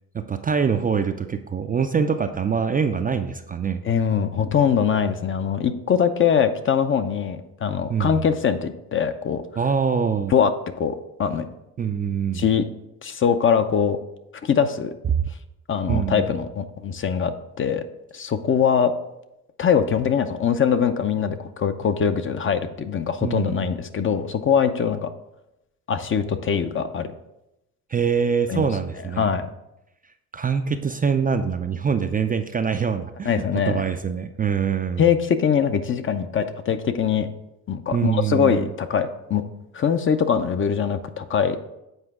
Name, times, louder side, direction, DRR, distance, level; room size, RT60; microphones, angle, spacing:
voice 1, 0.1-3.8 7.9-8.1 9.6-10.3 11.8-12.4 15.1-15.3 15.9-16.3 23.2-23.7 27.9-29.3 30.3-35.0 37.9-38.7, right 6 dB, 25° right, 7 dB, 0.4 m, -24 dB
voice 2, 3.8-9.4 10.3-10.5 10.8-11.5 12.3-12.6 13.0-14.0 14.4-14.9 15.7-17.8 18.1-18.9 19.6-25.1 25.9-27.1 28.5-28.7 29.2-29.5 33.3-33.9 35.0-37.3 37.7-39.4 39.7-41.6, left 7 dB, 35° left, 10 dB, 0.5 m, -22 dB
8.1 x 4.5 x 3.6 m, 0.89 s
supercardioid pair, 75°, 38 cm